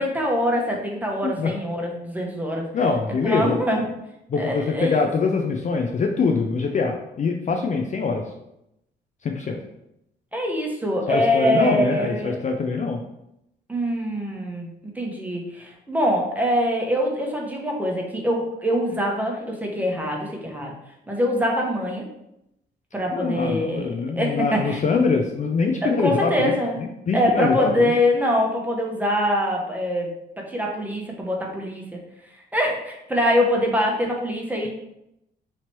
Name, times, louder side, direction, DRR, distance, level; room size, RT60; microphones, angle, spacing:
voice 1, 0.0-2.7 3.2-3.8 4.3-5.0 10.3-12.4 13.7-14.7 14.9-20.7 21.1-22.1 22.9-23.9 24.2-24.8 25.8-26.8 27.1-30.1 30.5-32.0 32.5-34.7, equal, 10° right, -1 dB, 1.0 m, -24 dB
voice 2, 2.7-3.6 4.3-8.2 9.2-9.6 11.1-13.0 23.1-26.5 27.1-27.9, left 4 dB, 40° left, 2 dB, 0.4 m, -23 dB
3.0 x 2.8 x 4.5 m, 0.83 s
cardioid pair, 90°, 20 cm